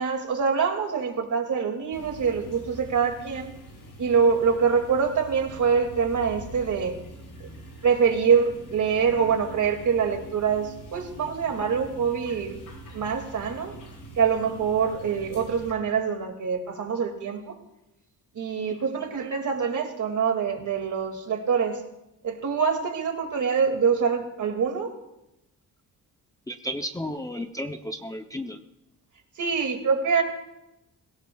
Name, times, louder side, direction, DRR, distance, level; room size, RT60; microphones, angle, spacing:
voice 1, 0.0-3.5 4.0-7.0 7.4-7.5 7.8-12.6 12.9-13.7 14.2-17.6 18.3-21.8 22.2-24.9 29.4-30.2, right 6 dB, 55° right, 4 dB, 2.3 m, -25 dB
sound 1, 1.9-15.7, right 1 dB, 65° left, 4.7 m, -44 dB
voice 2, 19.0-19.3 26.5-28.6, equal, 10° left, 4 dB, 0.6 m, -34 dB
23.5 x 17.0 x 2.3 m, 0.89 s
wide cardioid pair, 155°, 35 cm